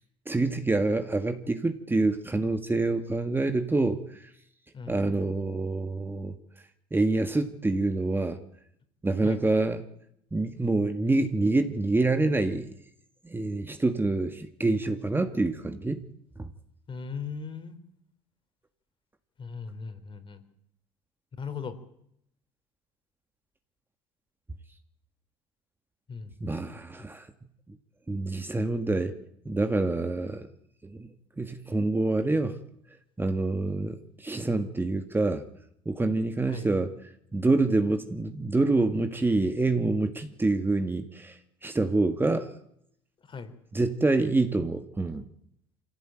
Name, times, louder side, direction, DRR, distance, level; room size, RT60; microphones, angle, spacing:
voice 1, 0.3-4.3 4.9-6.3 6.9-8.4 9.0-9.8 10.3-12.7 13.3-16.0 16.4-16.5 26.4-27.3 28.1-29.2 29.5-30.5 30.8-31.1 31.4-32.6 33.2-35.4 35.9-36.9 37.3-42.5 43.7-45.3, right 2 dB, 15° right, 8 dB, 1.9 m, -26 dB
voice 2, 4.7-5.2 9.2-9.4 16.9-17.8 19.4-20.4 21.4-21.8 26.1-27.1 36.5-36.7 43.3-43.5, left 5 dB, 35° left, 10 dB, 3.9 m, -39 dB
24.5 x 16.5 x 9.2 m, 0.75 s
hypercardioid pair, 80°, 14 cm